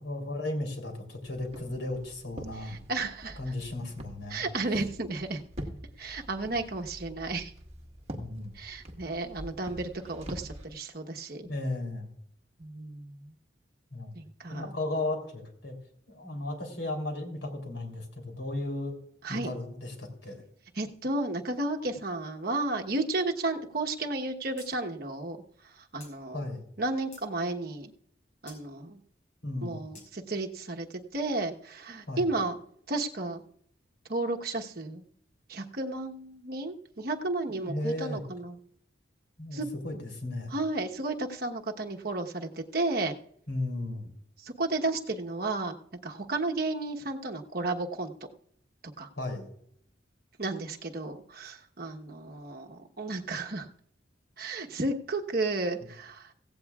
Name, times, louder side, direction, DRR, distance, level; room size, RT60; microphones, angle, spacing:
voice 1, 0.0-2.8 3.4-4.4 8.1-8.5 11.4-12.1 13.9-14.1 14.5-15.7 16.1-18.9 19.3-20.4 26.3-26.6 29.4-29.9 32.1-32.2 37.5-38.2 39.4-40.5 43.5-44.1 49.2-49.5, left 2 dB, 85° left, 4 dB, 3.4 m, -35 dB
Walk footsteps, 1.3-10.6, equal, 35° right, 1.7 m, -45 dB
voice 2, 2.6-3.4 4.3-5.4 6.0-7.5 8.6-11.5 12.6-13.1 14.1-14.7 19.2-19.5 20.8-25.4 25.9-26.4 26.8-27.9 28.4-29.0 29.6-30.9 31.1-32.6 32.9-33.4 34.1-35.0 35.5-38.6 39.5-39.7 40.5-43.1 44.4-45.8 46.0-48.1 49.0-49.1 50.4-53.7 54.4-56.3, right 2 dB, 55° right, 3 dB, 1.1 m, -33 dB
sound 1, 24.6-24.7 25.0-25.1 26.0-26.1 26.7-27.3 28.5-28.6 29.9-30.1, left 3 dB, 40° left, 4.8 m, -50 dB
16.5 x 16.0 x 2.4 m, 0.69 s
head